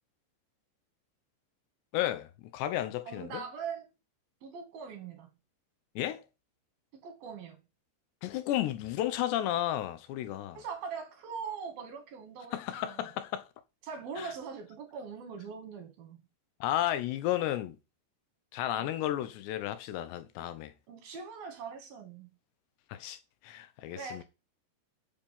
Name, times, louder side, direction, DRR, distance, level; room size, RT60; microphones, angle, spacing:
voice 1, 1.9-3.4 6.0-6.2 8.2-10.6 12.5-13.4 14.2-14.3 16.6-17.8 18.5-20.7 22.9-23.2 23.4-24.2, left 13 dB, 75° left, 2.9 m, -33 dB
voice 2, 3.1-3.9 4.4-5.3 6.9-7.6 10.5-13.0 13.8-16.2 18.8-19.0 20.9-22.3 24.0-24.2, right 6 dB, 55° right, 4.0 m, -42 dB
8.0 x 7.5 x 8.6 m
omnidirectional pair, 5.2 m